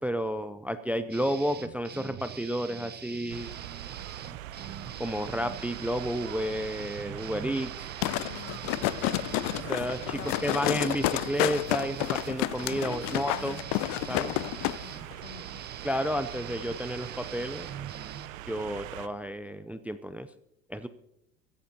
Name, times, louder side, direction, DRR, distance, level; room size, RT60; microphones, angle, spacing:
voice 1, 0.0-3.5 5.0-7.9 9.6-13.6 14.1-14.3 15.8-17.7 18.5-20.3 20.7-20.9, equal, 5° right, 13 dB, 0.4 m, -31 dB
sound 1, 1.1-18.3, right 8 dB, 25° right, 1.0 m, -44 dB
sound 2, 3.3-19.1, right 13 dB, 65° right, 0.8 m, -42 dB
sound 3, 8.0-14.8 15.1-15.2, left 18 dB, 45° left, 0.6 m, -30 dB
voice 2, 8.2-9.3 10.1-11.3 12.9-13.3 14.1-15.4, left 8 dB, 75° left, 13 dB, 1.2 m, -45 dB
24.5 x 15.0 x 2.8 m, 0.83 s
figure-of-eight pair, 70°, 43 cm